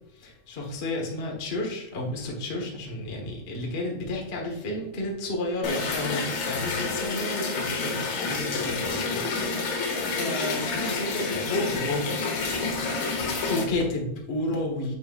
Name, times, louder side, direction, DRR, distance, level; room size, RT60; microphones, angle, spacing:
voice 1, 0.2-9.2 9.5-12.2 13.5-14.9, left 1 dB, 50° left, -1 dB, 0.7 m, -31 dB
sound 1, 5.6-13.6, left 4 dB, 70° left, 2.3 m, -29 dB
7.4 x 5.5 x 2.5 m, 0.82 s
omnidirectional pair, 3.5 m